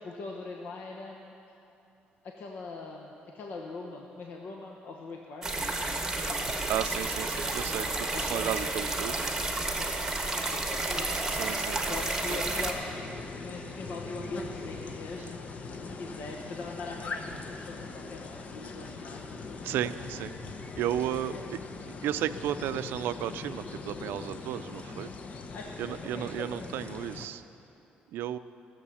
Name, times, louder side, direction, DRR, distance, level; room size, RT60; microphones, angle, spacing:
voice 1, 0.0-1.3 2.2-5.8 6.2-6.7 8.1-9.2 9.7-11.3 11.8-13.1 13.3-19.4 19.7-20.1 21.3-21.6 25.5-26.8, left 3 dB, 65° left, 0 dB, 1.0 m, -42 dB
sound 1, 5.4-12.7, right 2 dB, 15° right, 1.4 m, -31 dB
voice 2, 6.7-9.1 11.3-12.0 12.3-12.4 19.6-20.3 20.8-21.3 22.0-25.1 25.8-27.4 28.1-28.4, right 11 dB, 85° right, 13 dB, 0.4 m, -33 dB
sound 2, 12.4-27.3, left 4 dB, 40° left, 0.8 m, -41 dB
16.5 x 7.3 x 7.1 m, 2.8 s
cardioid pair, 120°, 4 cm